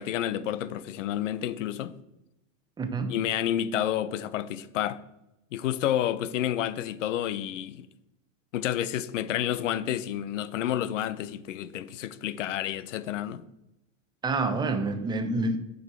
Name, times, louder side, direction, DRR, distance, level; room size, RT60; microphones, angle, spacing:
voice 1, 0.0-1.9 3.1-5.0 5.5-7.9 8.5-13.4, left 11 dB, 85° left, 0.8 m, -30 dB
voice 2, 2.8-3.1 14.2-15.6, right 3 dB, 10° right, 0.8 m, -27 dB
8.2 x 6.6 x 4.5 m
supercardioid pair, 130°, 36 cm